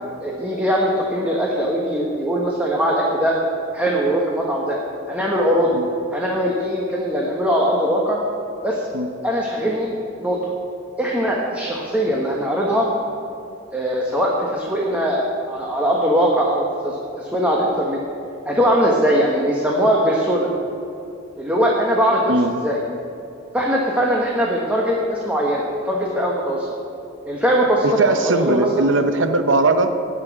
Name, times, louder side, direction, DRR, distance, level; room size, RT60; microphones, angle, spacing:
voice 1, 0.2-3.3 3.7-4.8 5.1-5.7 6.1-8.2 8.6-8.9 9.2-10.5 11.0-12.9 13.7-18.0 18.4-20.5 21.4-22.3 22.6-22.8 23.5-26.7 27.2-27.8 28.2-28.9, equal, 5° right, -3 dB, 1.3 m, -21 dB
voice 2, 27.8-29.9, right 2 dB, 70° right, 7 dB, 0.9 m, -19 dB
16.5 x 6.2 x 9.1 m, 2.6 s
head